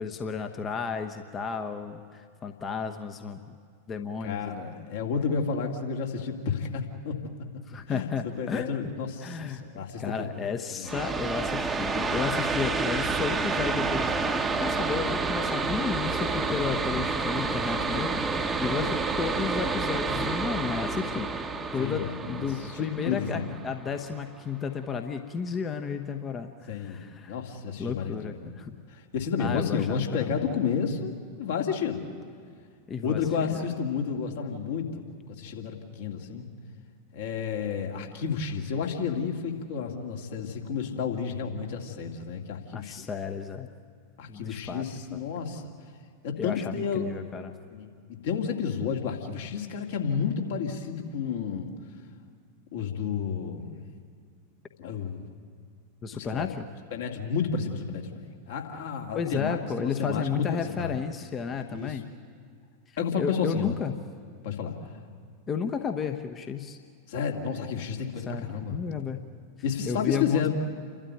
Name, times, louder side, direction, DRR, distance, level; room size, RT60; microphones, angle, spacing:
voice 1, 0.0-3.4 3.9-4.5 7.7-8.8 9.2-9.6 10.0-21.3 21.7-27.3 27.8-28.8 29.4-30.3 32.9-33.2 33.5-33.6 42.7-43.7 44.3-44.8 45.1-45.2 46.4-47.5 56.0-56.7 59.1-62.1 62.9-63.9 65.5-66.8 68.3-69.3 69.9-70.5, left 6 dB, 25° left, 6 dB, 1.0 m, -33 dB
voice 2, 4.2-7.2 7.9-10.3 10.7-10.9 17.7-18.1 21.8-23.6 26.7-28.5 28.9-32.0 33.0-35.1 35.4-36.5 37.1-43.1 44.2-45.7 46.2-47.1 47.7-51.7 52.7-53.8 54.8-55.2 56.1-56.5 56.9-60.9 61.7-62.0 63.0-63.8 64.4-65.0 67.1-68.8 69.6-70.5, left 6 dB, 55° left, 2 dB, 2.5 m, -31 dB
sound 1, 10.8-24.2, right 4 dB, 15° right, 1.0 m, -29 dB
29.5 x 12.5 x 9.4 m, 2.1 s
figure-of-eight pair, 90°, 0 cm